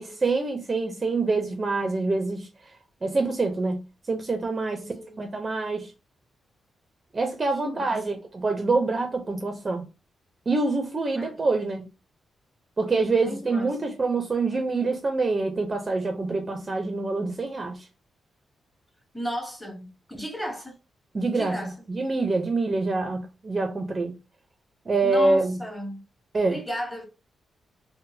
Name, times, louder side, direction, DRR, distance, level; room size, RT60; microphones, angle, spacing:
voice 1, 0.0-2.5 3.0-3.8 4.1-5.9 7.1-9.8 10.5-11.9 12.8-17.9 21.1-21.6 21.9-24.1 24.9-25.6 26.3-26.6, right 3 dB, 25° right, 0.5 m, -26 dB
voice 2, 4.7-5.3 7.6-8.0 11.2-11.6 13.2-13.9 19.1-20.8 21.3-21.8 25.0-26.0 26.4-27.0, equal, 10° left, 0.8 m, -35 dB
3.7 x 2.0 x 2.6 m
wide cardioid pair, 155°, 0 cm